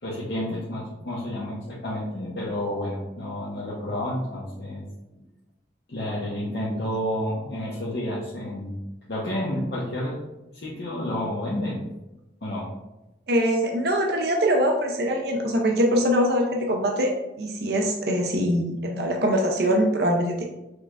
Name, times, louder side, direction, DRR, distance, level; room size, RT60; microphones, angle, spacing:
voice 1, 0.0-4.8 5.2-5.3 5.9-8.8 9.1-10.2 10.5-11.9 12.4-12.7, left 1 dB, 60° left, -7 dB, 0.9 m, -30 dB
voice 2, 13.3-20.4, equal, 55° right, 2 dB, 0.5 m, -23 dB
6.2 x 3.3 x 2.4 m, 0.96 s
head